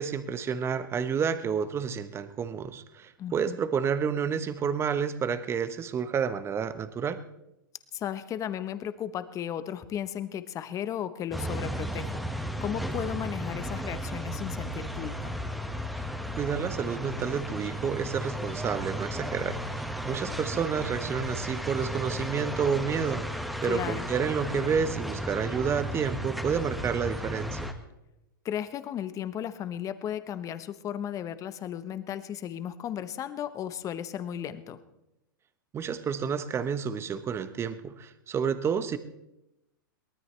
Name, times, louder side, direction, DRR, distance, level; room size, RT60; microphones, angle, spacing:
voice 1, 0.0-7.2 16.4-27.7 35.7-39.0, right 7 dB, 20° right, 12 dB, 1.0 m, -30 dB
voice 2, 3.2-3.6 7.9-15.4 23.6-24.1 28.4-34.8, left 10 dB, 30° left, 12 dB, 1.0 m, -35 dB
sound 1, 11.3-27.7, equal, ahead, 1.6 m, -34 dB
23.0 x 18.5 x 3.3 m, 0.92 s
hypercardioid pair, 110°, 11 cm